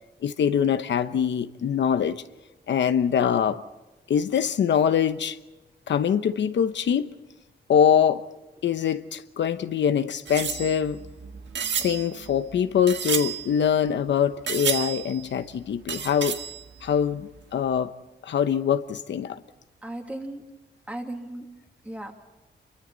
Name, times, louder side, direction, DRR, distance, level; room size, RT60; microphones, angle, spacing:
voice 1, 0.2-2.2 2.7-3.6 4.1-5.4 5.9-7.1 7.7-8.2 8.6-11.0 11.8-16.4 16.8-17.9 18.2-19.4, left 8 dB, 90° left, 1.0 m, -23 dB
sound 1, 10.3-14.1 14.5-15.4 15.9-17.0 17.4-17.5 17.6-17.7, right 7 dB, 85° right, 1.7 m, -32 dB
voice 2, 19.8-20.4 20.9-21.5 21.8-22.1, right 1 dB, 10° right, 2.7 m, -35 dB
29.0 x 23.5 x 4.1 m
wide cardioid pair, 165°, 18 cm